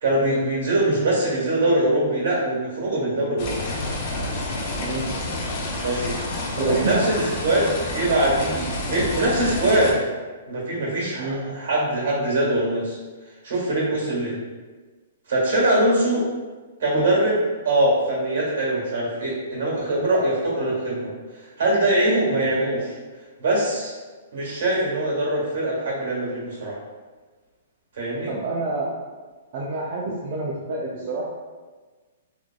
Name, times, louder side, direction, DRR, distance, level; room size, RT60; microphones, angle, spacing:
voice 1, 0.0-3.6 5.8-6.2 6.6-10.0 10.5-13.0 13.4-14.4 15.3-16.3 16.8-23.0 23.4-23.9 24.3-26.8 27.9-28.3, right 1 dB, 65° right, -5 dB, 1.4 m, -22 dB
sound 1, 3.4-9.9, left 2 dB, 40° left, 0.4 m, -29 dB
voice 2, 4.8-5.1 6.5-7.1 11.2-11.6 22.3-22.5 28.2-28.9 29.5-31.3, right 2 dB, 40° right, -5 dB, 0.4 m, -28 dB
3.1 x 2.3 x 2.2 m, 1.4 s
hypercardioid pair, 165°, 0 cm